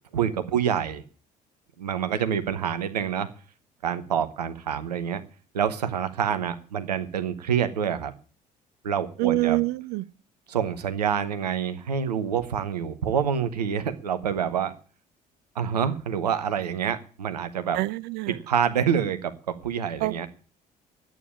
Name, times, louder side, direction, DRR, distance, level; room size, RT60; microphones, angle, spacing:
voice 1, 0.1-1.0 1.8-3.3 3.8-5.2 5.5-8.1 8.8-9.6 10.5-14.7 15.5-17.8 18.5-20.3, right 8 dB, 80° right, 1.0 m, -27 dB
voice 2, 9.2-10.0 17.8-18.4 20.0-20.1, right 19 dB, 55° right, 0.6 m, -25 dB
11.0 x 9.0 x 8.6 m
figure-of-eight pair, 55°, 21 cm